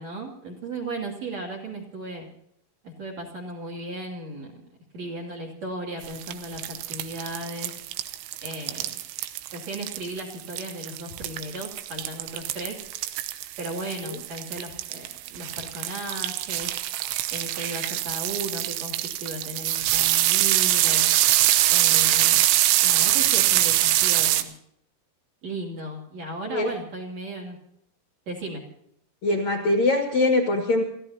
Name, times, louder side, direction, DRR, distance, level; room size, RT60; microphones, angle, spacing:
voice 1, 0.0-2.3 2.8-4.6 4.9-7.7 8.4-8.9 9.5-12.8 13.6-16.7 17.3-21.1 21.7-22.4 22.8-24.5 25.4-27.6 28.3-28.6, right 1 dB, 40° right, 1 dB, 3.1 m, -35 dB
Adding Bacon To Frying Pan, 6.0-24.4, right 14 dB, 80° right, 3.3 m, -24 dB
voice 2, 29.2-30.8, left 2 dB, 55° left, 2 dB, 2.1 m, -22 dB
30.0 x 15.0 x 2.8 m, 0.74 s
omnidirectional pair, 5.9 m